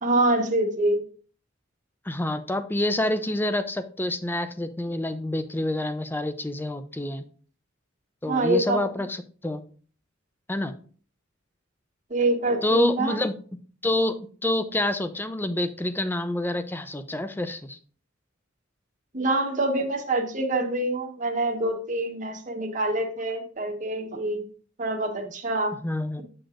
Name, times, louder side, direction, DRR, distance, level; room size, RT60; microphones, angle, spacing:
voice 1, 0.0-1.0 8.3-8.8 12.1-13.2 19.1-24.4 24.8-25.7, right 2 dB, 40° right, 2 dB, 1.3 m, -25 dB
voice 2, 2.1-7.2 8.2-9.6 10.5-10.7 12.6-13.3 13.8-17.8 25.8-26.2, left 1 dB, 10° left, 11 dB, 0.5 m, -27 dB
7.7 x 6.7 x 2.5 m, 0.43 s
head